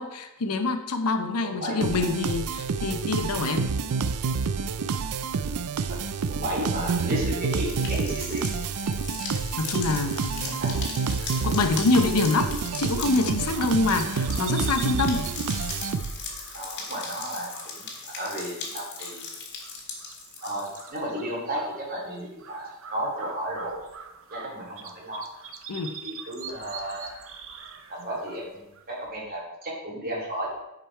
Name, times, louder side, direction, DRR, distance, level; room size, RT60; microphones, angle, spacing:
voice 1, 0.0-3.7 9.6-10.6 11.2-15.3 25.7-26.0, left 3 dB, 85° left, 8 dB, 0.7 m, -26 dB
voice 2, 1.4-2.1 5.0-5.4 5.9-8.6 10.4-10.7 13.2-13.3 13.5-13.6 16.5-17.9 18.2-19.3 20.4-23.8 24.3-25.3 26.0-27.1 27.9-30.5, right 1 dB, 45° right, -3 dB, 2.7 m, -33 dB
sound 1, 1.8-16.4, right 5 dB, 80° right, 0.4 m, -28 dB
sound 2, 6.8-21.0, left 4 dB, 55° left, 1.9 m, -38 dB
sound 3, 13.1-29.2, right 6 dB, 65° right, 0.8 m, -44 dB
9.9 x 5.2 x 4.5 m, 0.93 s
head